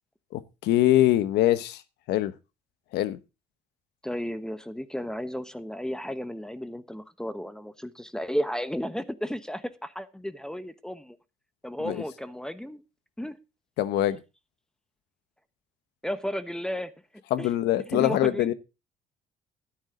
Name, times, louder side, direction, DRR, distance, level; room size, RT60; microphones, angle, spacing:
voice 1, 0.3-1.8 2.1-2.3 2.9-3.2 11.8-12.0 13.8-14.2 17.3-18.5, left 14 dB, 85° left, 1.1 m, -23 dB
voice 2, 4.0-11.2 11.6-12.8 13.2-13.4 16.0-16.9 17.4-17.5 17.9-18.5, equal, 5° left, 1.1 m, -33 dB
13.0 x 9.8 x 3.8 m
cardioid pair, 110°, 17 cm